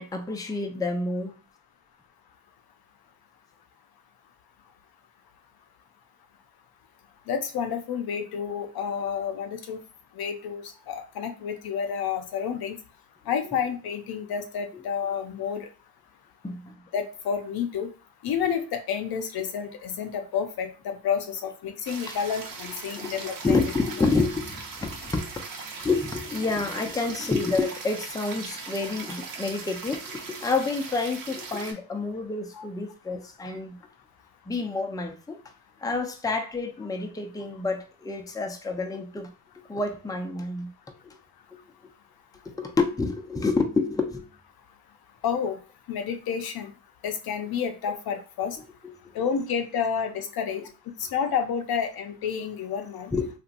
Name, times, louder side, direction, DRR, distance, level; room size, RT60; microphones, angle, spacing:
voice 1, 0.0-1.3 16.4-16.8 22.1-22.2 23.0-23.1 23.4-25.3 25.8-33.8 34.5-35.4 35.8-39.3 39.7-40.7 41.0-41.2 42.5-44.2 48.8-48.9 50.6-50.7 53.1-53.3, left 3 dB, 10° left, 3 dB, 0.6 m, -28 dB
voice 2, 7.3-9.8 10.2-12.8 13.3-15.7 16.9-17.9 18.2-23.6 32.5-32.6 45.2-45.6 45.9-46.7 47.0-48.6 49.1-50.6 51.1-53.1, left 7 dB, 60° left, 6 dB, 0.7 m, -30 dB
sound 1, 21.8-31.7, right 4 dB, 50° right, 0.9 m, -39 dB
2.8 x 2.5 x 2.5 m, 0.35 s
supercardioid pair, 55°, 42 cm